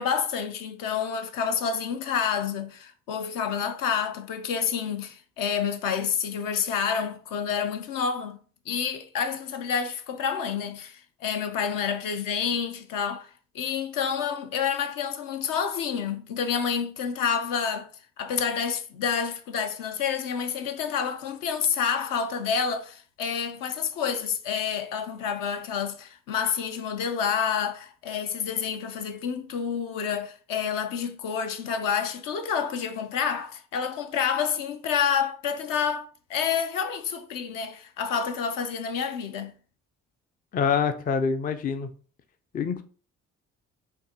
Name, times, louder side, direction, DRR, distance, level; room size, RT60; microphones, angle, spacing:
voice 1, 0.0-8.4 8.7-13.3 13.5-17.9 18.2-39.5, left 7 dB, 55° left, 0.7 m, -28 dB
voice 2, 40.5-41.9 42.5-42.8, left 6 dB, 25° left, 0.4 m, -25 dB
4.4 x 2.6 x 2.8 m
hypercardioid pair, 45°, 39 cm